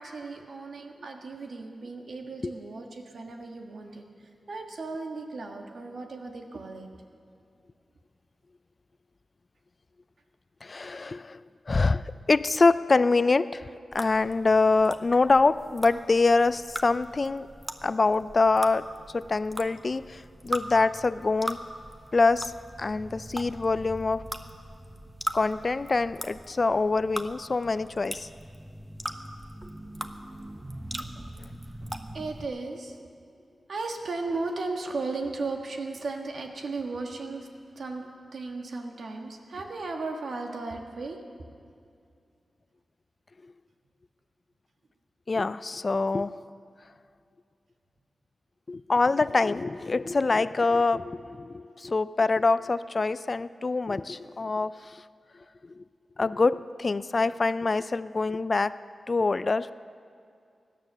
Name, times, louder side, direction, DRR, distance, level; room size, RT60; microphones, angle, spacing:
voice 1, 0.0-6.9 32.1-33.0 33.7-38.1 38.3-41.2, right 3 dB, 70° right, 3 dB, 1.6 m, -36 dB
voice 2, 10.6-11.4 11.7-13.7 13.9-17.5 17.8-18.9 19.1-21.6 22.1-22.5 22.8-24.2 25.3-28.3 45.3-46.3 48.7-55.0 55.8-55.9 56.2-58.7 59.1-59.7, left 3 dB, 50° left, 15 dB, 0.5 m, -25 dB
sound 1, 13.9-32.5, right 1 dB, 20° right, 1.1 m, -40 dB
17.0 x 11.0 x 6.6 m, 2.4 s
cardioid pair, 40°, 0 cm